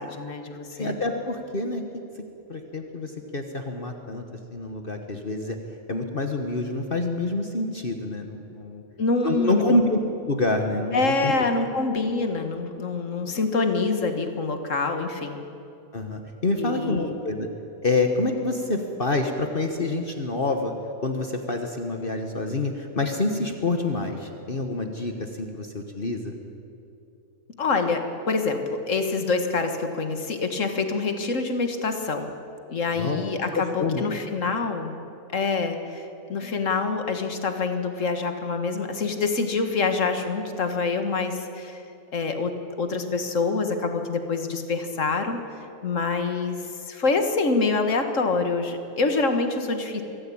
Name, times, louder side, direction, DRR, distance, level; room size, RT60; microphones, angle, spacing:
voice 1, 0.0-1.0 9.0-9.8 10.9-15.4 16.6-17.2 27.6-32.3 32.7-34.9 35.3-41.8 42.1-45.4 45.8-50.0, left 3 dB, 60° left, 6 dB, 2.0 m, -26 dB
voice 2, 0.8-1.8 2.5-4.2 4.5-5.6 5.9-8.8 9.2-10.0 10.3-11.4 15.9-17.5 17.8-20.7 21.0-26.3 33.0-33.2 33.5-34.0, left 2 dB, 40° left, 4 dB, 1.4 m, -27 dB
24.5 x 14.0 x 8.7 m, 2.8 s
omnidirectional pair, 1.5 m